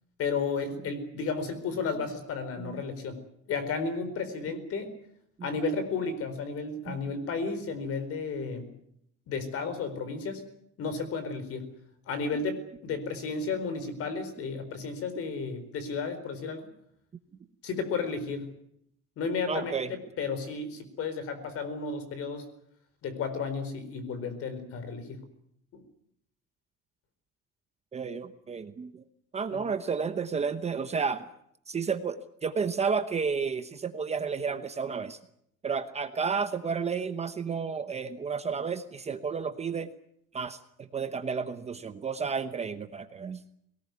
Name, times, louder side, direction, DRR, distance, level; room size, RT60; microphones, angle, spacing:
voice 1, 0.2-3.2 3.5-4.9 5.4-8.7 9.3-10.4 10.8-11.7 12.1-16.7 17.6-18.5 19.2-19.7 20.2-22.4 23.0-25.2 25.7-25.8 29.5-29.6, left 4 dB, 50° left, 11 dB, 4.5 m, -33 dB
voice 2, 19.5-19.9 27.9-29.0 29.3-31.3 31.7-35.2 35.6-39.9 40.3-43.4, right 5 dB, 20° right, 9 dB, 1.0 m, -32 dB
21.5 x 18.5 x 9.5 m, 0.74 s
cardioid pair, 160°, 30 cm